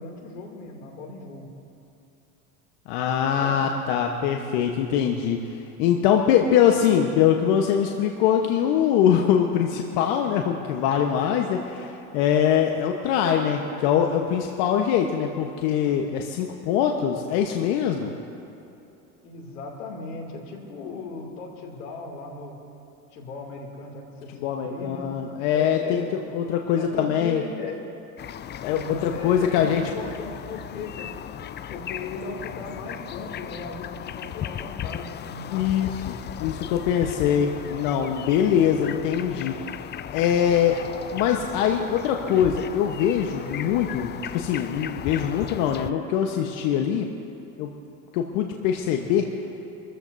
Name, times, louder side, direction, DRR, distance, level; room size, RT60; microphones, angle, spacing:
voice 1, 0.0-1.5 3.4-3.6 19.2-22.6 23.1-25.0 25.5-26.1 26.8-27.8 28.7-31.1 31.7-35.9, left 4 dB, 90° left, 1 dB, 2.9 m, -37 dB
voice 2, 2.9-18.1 24.4-26.0 26.3-27.4 28.6-29.8 35.5-39.6 40.1-40.8 41.1-47.1 47.6-47.7 48.1-49.3, left 9 dB, 70° left, 2 dB, 1.3 m, -23 dB
sound 1, 28.2-45.9, left 10 dB, 25° left, 0.4 m, -36 dB
25.5 x 14.0 x 2.8 m, 2.8 s
hypercardioid pair, 90°, 45 cm